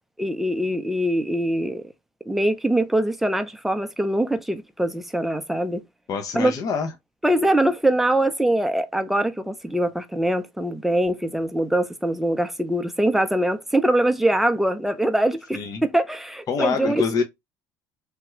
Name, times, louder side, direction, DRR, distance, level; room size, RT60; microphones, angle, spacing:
voice 1, 0.2-1.8 2.3-5.8 6.3-6.5 7.2-17.0, right 1 dB, 5° right, 0.5 m, -23 dB
voice 2, 6.1-6.9 15.5-15.8 16.5-17.2, left 5 dB, 45° left, 0.6 m, -25 dB
3.3 x 2.3 x 3.0 m
supercardioid pair, 100°, 8 cm